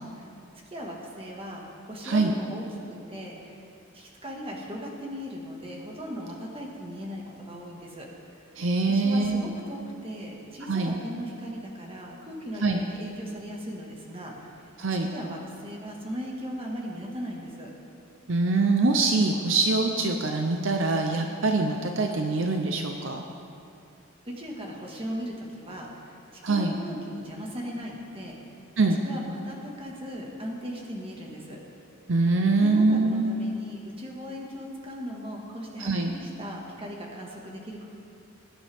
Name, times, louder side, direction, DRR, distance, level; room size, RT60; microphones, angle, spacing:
voice 1, 0.7-3.6 3.9-8.1 8.9-14.6 15.1-17.7 24.3-26.2 26.4-28.4 29.0-31.6 32.6-37.8, equal, 25° right, -1 dB, 1.8 m, -38 dB
voice 2, 8.6-9.4 10.7-11.0 12.6-12.8 14.8-15.1 18.3-23.2 26.4-26.8 28.8-29.0 32.1-33.3 35.8-36.1, right 3 dB, 65° right, 3 dB, 0.7 m, -24 dB
20.0 x 10.0 x 3.6 m, 2.6 s
head